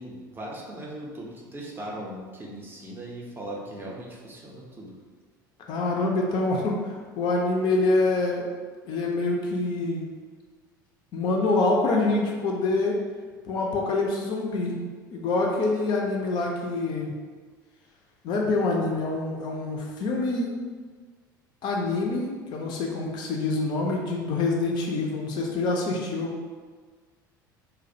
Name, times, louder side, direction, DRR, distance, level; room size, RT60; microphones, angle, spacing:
voice 1, 0.0-5.0, right 1 dB, 20° right, -3 dB, 0.5 m, -39 dB
voice 2, 5.7-8.5 8.9-10.1 11.1-13.0 13.5-14.7 15.1-17.1 18.2-20.5 21.6-26.4, left 2 dB, 45° left, -1 dB, 0.4 m, -26 dB
2.3 x 2.1 x 2.6 m, 1.5 s
figure-of-eight pair, 65°, 11 cm